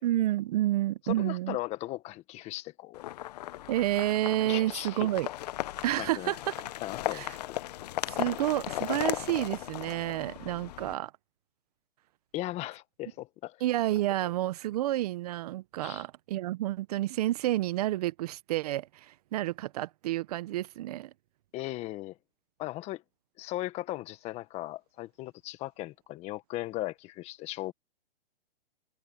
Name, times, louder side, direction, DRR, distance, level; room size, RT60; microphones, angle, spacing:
voice 1, 0.0-1.6 3.7-5.3 5.8-6.7 7.1-7.4 8.1-11.1 13.6-21.1, right 15 dB, 40° right, 1.0 m, -30 dB
voice 2, 1.0-3.0 4.4-5.1 6.0-6.4 6.8-7.6 12.3-13.6 15.8-16.0 21.5-22.2 22.6-23.0 23.4-27.7, left 17 dB, 20° left, 1.3 m, -37 dB
sound 1, 2.9-10.9, left 14 dB, 40° left, 0.9 m, -37 dB
hypercardioid pair, 150°, 31 cm